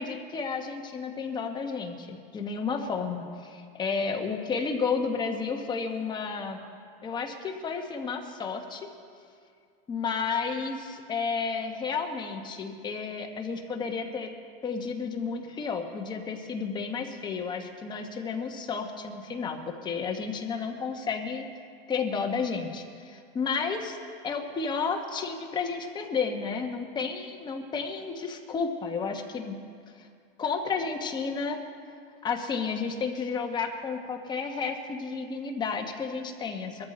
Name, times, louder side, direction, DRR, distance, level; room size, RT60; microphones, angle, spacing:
voice 1, 0.0-6.7 7.0-8.9 9.9-14.3 14.6-21.4 21.9-24.0 24.2-29.6 30.0-30.1 30.4-31.6 32.2-36.9, left 5 dB, 15° left, 3 dB, 1.1 m, -32 dB
21.5 x 13.5 x 4.3 m, 2.2 s
supercardioid pair, 160°, 30 cm